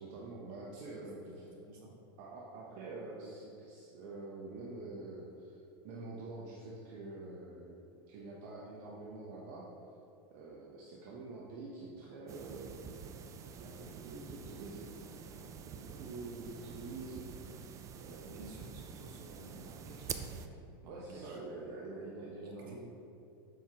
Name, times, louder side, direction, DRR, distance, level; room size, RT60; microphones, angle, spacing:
voice 1, 0.0-1.5 2.2-7.8 8.1-9.7 10.3-13.1 13.6-17.5 18.0-18.6 20.9-22.8, right 3 dB, 55° right, -4 dB, 0.9 m, -46 dB
voice 2, 1.3-1.9 18.2-20.5 20.8-21.4 22.4-22.8, right 2 dB, 70° right, -1 dB, 1.5 m, -53 dB
sound 1, 12.3-20.5, right 6 dB, 25° right, 0.4 m, -47 dB
7.6 x 5.5 x 2.9 m, 2.7 s
supercardioid pair, 130°, 12 cm